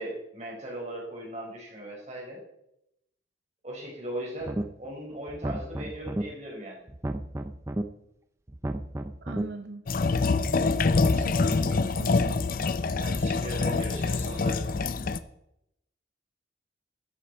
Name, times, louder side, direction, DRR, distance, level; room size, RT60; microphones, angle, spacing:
voice 1, 0.0-2.4 3.6-6.8 13.0-14.6, right 1 dB, 40° right, -1 dB, 4.2 m, -38 dB
sound 1, 4.4-4.9 5.3-6.2 6.9-7.8 8.5-9.4, right 1 dB, 15° right, 0.6 m, -32 dB
voice 2, 9.2-9.8 11.1-12.4, right 2 dB, 60° right, 8 dB, 0.7 m, -40 dB
sound 2, 9.9-15.2, left 3 dB, 45° left, 0.5 m, -25 dB
13.5 x 9.4 x 4.4 m, 0.82 s
head